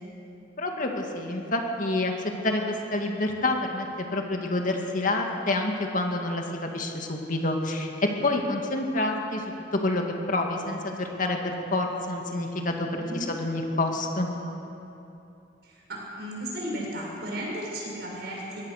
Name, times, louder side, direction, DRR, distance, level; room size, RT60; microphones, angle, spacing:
voice 1, 0.6-2.1 2.4-14.3, left 2 dB, 45° left, 2 dB, 2.1 m, -28 dB
voice 2, 13.0-13.3 15.6-18.6, right 1 dB, 60° right, -3 dB, 6.4 m, -35 dB
23.0 x 17.0 x 6.6 m, 2.9 s
head